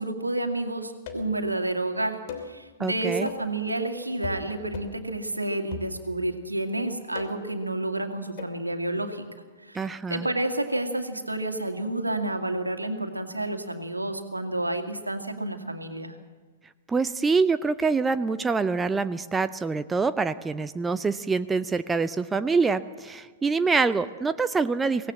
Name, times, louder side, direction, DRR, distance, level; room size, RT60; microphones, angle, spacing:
voice 1, 0.0-9.2 9.6-16.1, right 2 dB, 80° right, 6 dB, 2.2 m, -30 dB
sound 1, 1.1-1.4 2.3-2.6 3.3-3.6 4.2-4.5 4.7-5.0 5.7-6.3 7.1-7.6 8.4-8.6, left 6 dB, 45° left, 3.0 m, -39 dB
voice 2, 2.8-3.3 9.7-10.3 16.9-25.1, right 4 dB, 10° right, 13 dB, 0.6 m, -25 dB
24.5 x 17.5 x 7.5 m, 1.4 s
figure-of-eight pair, 105°, 0 cm